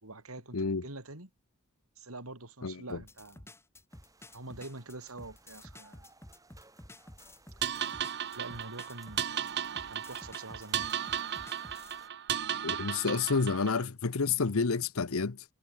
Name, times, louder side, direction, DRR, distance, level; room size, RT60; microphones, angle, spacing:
voice 1, 0.0-1.3 2.0-3.5 4.3-6.1 8.3-9.3 9.9-10.9, right 2 dB, 85° right, 4.7 m, -45 dB
voice 2, 0.5-0.8 2.6-3.0 12.6-15.4, left 4 dB, 80° left, 0.9 m, -30 dB
sound 1, 2.9-12.0, left 1 dB, 10° left, 4.8 m, -52 dB
sound 2, 3.9-12.1, right 3 dB, 15° right, 3.2 m, -61 dB
sound 3, 7.6-13.9, right 9 dB, 50° right, 0.8 m, -35 dB
head